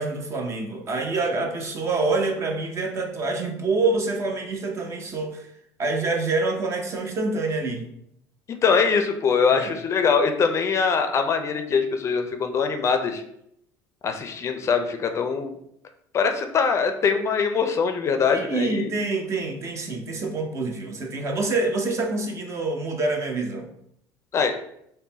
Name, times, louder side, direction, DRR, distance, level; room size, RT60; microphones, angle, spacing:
voice 1, 0.0-5.5 5.8-7.9 9.5-9.7 18.3-23.7, right 3 dB, 40° right, 3 dB, 0.8 m, -26 dB
voice 2, 8.5-13.2 14.0-15.5 16.1-18.9 24.3-24.5, left 5 dB, 40° left, 7 dB, 0.4 m, -22 dB
3.8 x 2.1 x 3.9 m, 0.74 s
supercardioid pair, 105°, 8 cm